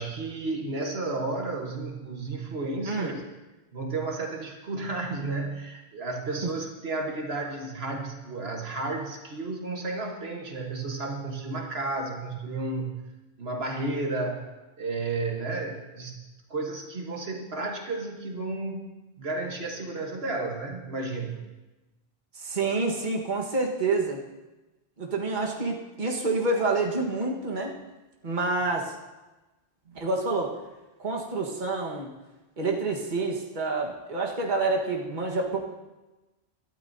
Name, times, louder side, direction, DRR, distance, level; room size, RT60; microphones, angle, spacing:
voice 1, 0.0-3.2 3.7-13.0 13.4-14.5 14.8-16.2 16.5-18.9 19.2-21.5 29.9-30.1, right 3 dB, 75° right, 1 dB, 1.6 m, -32 dB
voice 2, 22.4-24.2 25.0-27.7 28.2-29.0 29.9-30.5 31.0-32.1 32.6-35.6, right 3 dB, 50° right, 0 dB, 1.6 m, -28 dB
22.0 x 12.0 x 2.7 m, 1.1 s
omnidirectional pair, 1.1 m